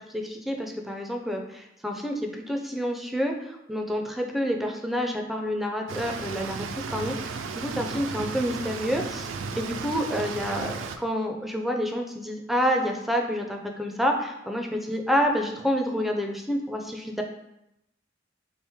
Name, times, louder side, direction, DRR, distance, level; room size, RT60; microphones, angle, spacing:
voice 1, 0.1-9.3 9.6-17.2, equal, ahead, 2 dB, 0.4 m, -28 dB
sound 1, 5.9-11.0, right 5 dB, 80° right, 0.3 m, -34 dB
3.1 x 2.9 x 3.4 m, 0.85 s
head